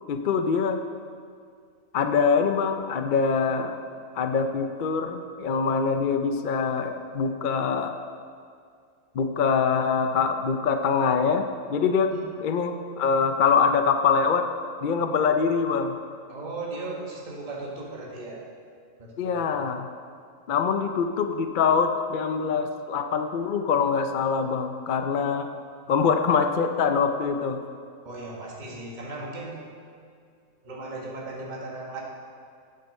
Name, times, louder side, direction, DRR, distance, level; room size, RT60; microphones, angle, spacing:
voice 1, 0.1-0.8 1.9-3.8 4.1-7.9 9.1-12.1 12.4-14.5 14.8-16.0 19.2-19.9 20.5-25.5 25.9-27.6, left 5 dB, 60° left, 6 dB, 0.5 m, -24 dB
voice 2, 16.3-18.4 19.0-19.5 28.0-29.6 30.6-32.0, right 2 dB, 35° right, -3 dB, 1.5 m, -37 dB
9.2 x 6.7 x 6.5 m, 2.3 s
omnidirectional pair, 1.4 m